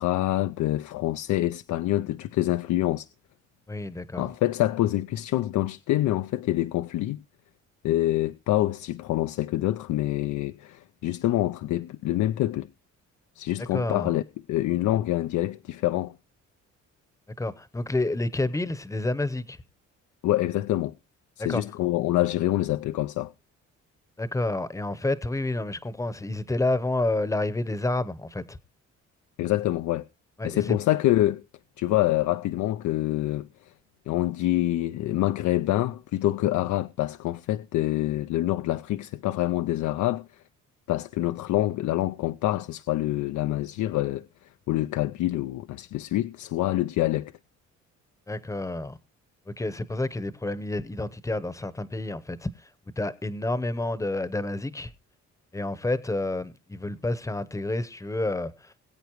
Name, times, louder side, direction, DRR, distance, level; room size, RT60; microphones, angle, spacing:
voice 1, 0.0-3.1 4.1-7.2 7.8-12.7 13.4-14.2 14.5-16.1 20.2-20.9 21.4-23.3 29.4-30.0 30.4-31.4 31.8-33.5 34.1-40.4 40.9-44.3 44.7-47.3, left 15 dB, 75° left, 0.5 m, -26 dB
voice 2, 3.7-4.3 13.7-14.1 17.4-19.6 21.5-21.6 24.2-28.6 30.4-30.8 48.3-49.0 49.5-52.5 53.0-54.9 55.5-58.7, left 2 dB, 10° left, 0.8 m, -29 dB
21.0 x 8.2 x 3.0 m
cardioid pair, 90°, 30 cm